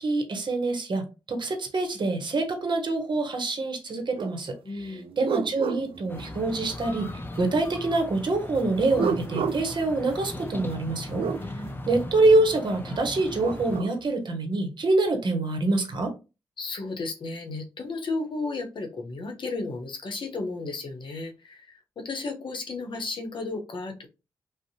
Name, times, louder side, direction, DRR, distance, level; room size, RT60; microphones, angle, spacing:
voice 1, 0.0-11.3 11.9-16.1, right 2 dB, 55° right, 0.8 m, -25 dB
sound 1, 4.2-4.4 4.8-6.8 8.7-11.4 13.1-14.0, right 6 dB, 75° right, 0.4 m, -33 dB
voice 2, 4.6-5.1 11.3-11.9 16.6-24.1, left 3 dB, 60° left, 0.7 m, -34 dB
sound 2, 6.1-13.8, left 1 dB, 20° left, 0.5 m, -38 dB
2.6 x 2.0 x 2.6 m
supercardioid pair, 45°, 9 cm